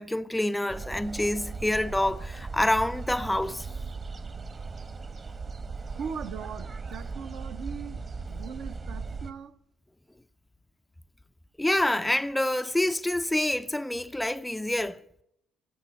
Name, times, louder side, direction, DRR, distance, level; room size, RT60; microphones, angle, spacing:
voice 1, 0.0-3.7 11.6-15.0, left 1 dB, 5° left, 0.5 m, -27 dB
sound 1, 0.7-9.3, right 4 dB, 30° right, 1.2 m, -38 dB
voice 2, 5.9-8.0 8.3-9.5, right 6 dB, 50° right, 0.8 m, -39 dB
18.5 x 8.3 x 8.5 m
figure-of-eight pair, 50°, 0 cm